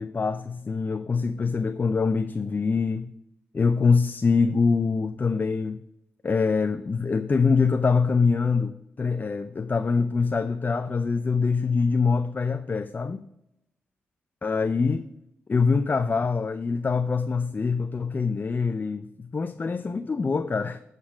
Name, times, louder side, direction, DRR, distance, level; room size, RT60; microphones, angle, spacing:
voice 1, 0.0-3.1 3.5-5.8 6.2-13.2 14.4-15.1 15.5-20.8, left 4 dB, 35° left, 0.5 m, -24 dB
7.9 x 4.0 x 6.3 m
supercardioid pair, 45°, 5 cm